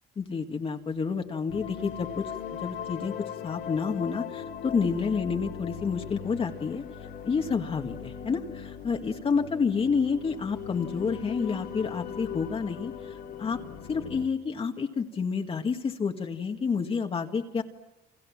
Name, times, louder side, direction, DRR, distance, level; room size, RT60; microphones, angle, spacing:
voice 1, 0.2-6.8 7.2-13.6 13.9-17.6, left 5 dB, 35° left, 3 dB, 2.0 m, -29 dB
sound 1, 1.5-14.3, left 8 dB, 70° left, 3.2 m, -39 dB
30.0 x 26.0 x 7.4 m, 1.0 s
cardioid pair, 110°, 17 cm